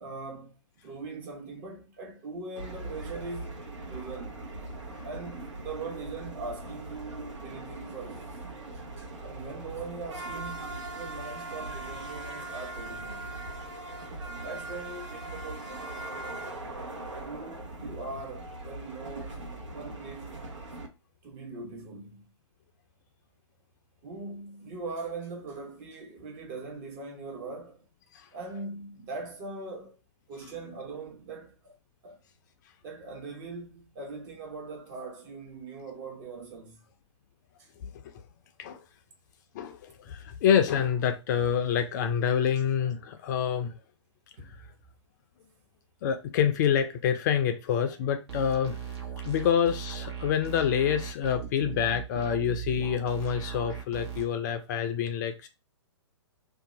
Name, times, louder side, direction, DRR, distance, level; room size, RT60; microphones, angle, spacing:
voice 1, 0.0-4.4 5.0-8.4 9.0-13.3 14.2-15.7 17.2-19.4 19.7-20.4 21.2-22.2 24.0-27.9 28.3-30.0 30.3-31.8 32.0-32.2 32.8-36.8 37.6-37.7 44.4-44.7, right 3 dB, 35° right, 1.0 m, -41 dB
sound 1, 2.6-20.9, right 2 dB, 80° right, 1.0 m, -40 dB
voice 2, 39.5-43.7 46.0-49.0 49.2-55.5, left 8 dB, 40° left, 0.4 m, -27 dB
sound 2, 48.3-54.2, right 8 dB, 60° right, 1.2 m, -38 dB
2.7 x 2.3 x 4.0 m
figure-of-eight pair, 125°, 15 cm